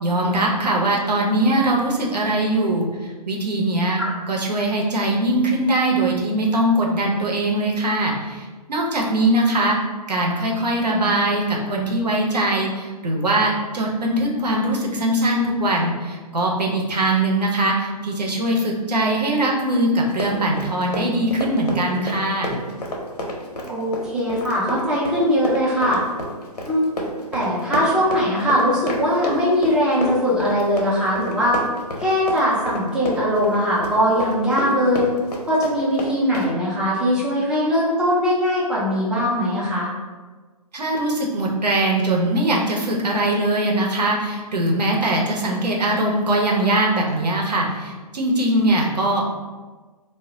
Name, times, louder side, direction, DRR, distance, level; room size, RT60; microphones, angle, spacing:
voice 1, 0.0-4.0 4.3-9.8 10.1-22.6 40.7-49.4, right 1 dB, 80° right, -1 dB, 0.7 m, -21 dB
Run, 20.0-36.5, equal, 75° left, 0.7 m, -30 dB
voice 2, 23.7-26.0 26.6-26.8 27.3-31.6 32.0-35.1 35.5-39.9, equal, 5° right, -7 dB, 0.4 m, -20 dB
2.1 x 2.0 x 3.7 m, 1.3 s
figure-of-eight pair, 135°, 20 cm